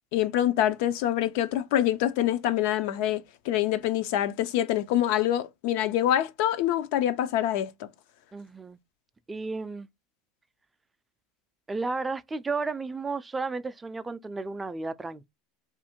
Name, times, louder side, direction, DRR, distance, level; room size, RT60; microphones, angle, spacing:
voice 1, 0.1-7.9, left 12 dB, 65° left, 0.4 m, -26 dB
voice 2, 8.3-8.8 9.3-9.9 11.7-15.3, right 3 dB, 15° right, 0.3 m, -33 dB
2.6 x 2.4 x 2.8 m
hypercardioid pair, 95°, 0 cm